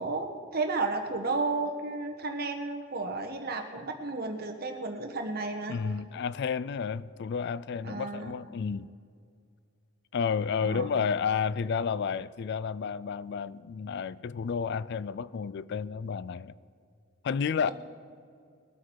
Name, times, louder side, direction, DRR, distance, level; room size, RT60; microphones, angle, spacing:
voice 1, 0.0-5.8 7.8-8.3 10.6-10.9, right 3 dB, 45° right, 1.2 m, -33 dB
voice 2, 5.7-8.9 10.1-16.5 17.2-17.7, left 6 dB, 50° left, 0.3 m, -31 dB
21.0 x 8.5 x 4.7 m
head